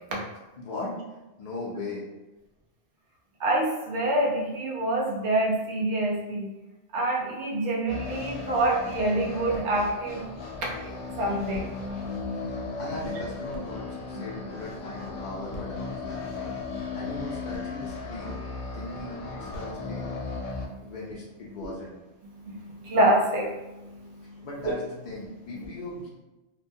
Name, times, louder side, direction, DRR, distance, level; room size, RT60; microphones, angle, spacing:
voice 1, 0.6-1.0 1.4-2.0 12.8-16.5 16.9-18.4 18.7-20.1 20.8-22.0 24.4-26.1, left 2 dB, 55° left, -6 dB, 0.5 m, -38 dB
voice 2, 3.4-6.5 6.9-10.3 10.8-13.1 16.5-17.0 20.4-21.0 21.5-21.7 22.2-24.7, right 1 dB, 85° right, -3 dB, 1.0 m, -28 dB
sound 1, 7.9-20.7, left 4 dB, 80° left, 0.9 m, -36 dB
2.9 x 2.1 x 2.6 m, 1.0 s
omnidirectional pair, 1.1 m